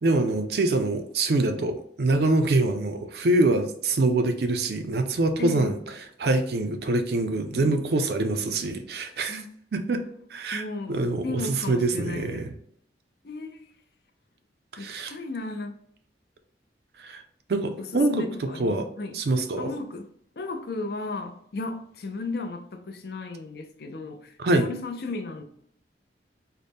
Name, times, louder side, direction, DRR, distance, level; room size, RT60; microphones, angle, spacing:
voice 1, 0.0-5.8 6.2-9.4 9.7-10.0 10.3-10.6 10.9-12.5 14.7-15.1 17.0-17.2 17.5-18.2 18.6-18.9 19.1-19.7 24.4-24.7, right 2 dB, 60° right, 0.4 m, -24 dB
voice 2, 5.4-5.7 7.5-7.7 9.3-9.5 10.5-12.5 13.2-13.6 14.8-15.7 17.8-19.2 19.6-20.1 20.4-25.4, left 3 dB, 55° left, 0.5 m, -35 dB
4.0 x 2.1 x 3.4 m
head